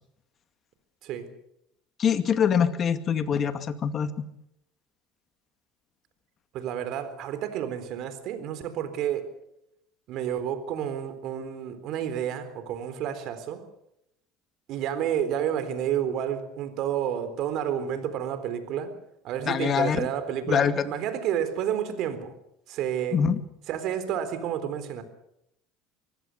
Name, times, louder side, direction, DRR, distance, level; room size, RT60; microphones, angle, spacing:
voice 1, 2.0-4.3 19.5-20.1 20.5-20.9 23.1-23.4, left 7 dB, 40° left, 10 dB, 2.2 m, -24 dB
voice 2, 6.5-9.3 10.1-13.6 14.7-18.9 19.2-22.3 22.7-23.2 23.7-25.0, right 9 dB, 60° right, 11 dB, 3.9 m, -30 dB
24.5 x 16.5 x 8.3 m, 0.79 s
supercardioid pair, 90°, 0 cm